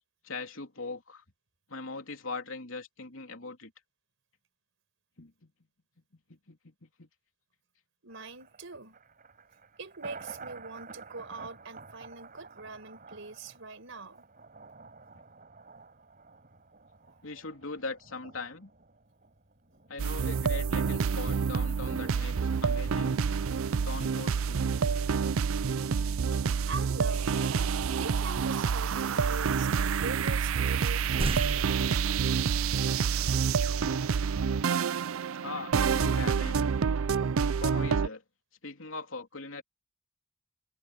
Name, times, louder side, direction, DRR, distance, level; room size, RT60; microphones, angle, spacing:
voice 1, 0.2-1.2 1.7-3.7 5.2-5.5 6.3-7.1 17.2-18.7 19.9-23.2 23.8-24.7 29.2-29.3 35.4-36.7 37.6-38.2 38.6-39.6, left 3 dB, 75° left, 3.2 m, -41 dB
voice 2, 8.0-9.0 9.8-14.2 17.0-17.1 26.7-31.7, right 3 dB, 70° right, 5.1 m, -43 dB
Thunder, 8.1-25.2 25.6-25.7, right 3 dB, 45° right, 4.4 m, -51 dB
sound 1, 20.0-38.1, right 6 dB, 90° right, 0.5 m, -28 dB
sound 2, 30.7-32.6, right 2 dB, 25° right, 0.6 m, -36 dB
head